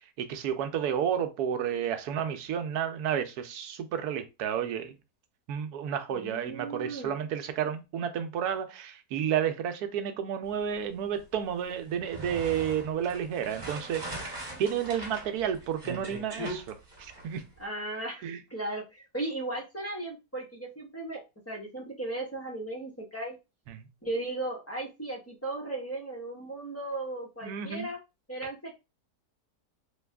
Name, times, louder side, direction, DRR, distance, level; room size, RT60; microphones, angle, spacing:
voice 1, 0.2-4.9 5.5-14.2 14.6-17.4 18.2-18.4 23.7-23.9 27.4-27.9, right 8 dB, 80° right, 1.1 m, -31 dB
voice 2, 6.1-7.1 17.6-23.4 24.0-28.0 28.3-28.7, right 2 dB, 10° left, 0.8 m, -36 dB
sound 1, 11.9-17.4, right 1 dB, 30° right, 1.6 m, -40 dB
3.4 x 2.3 x 3.3 m
omnidirectional pair, 1.6 m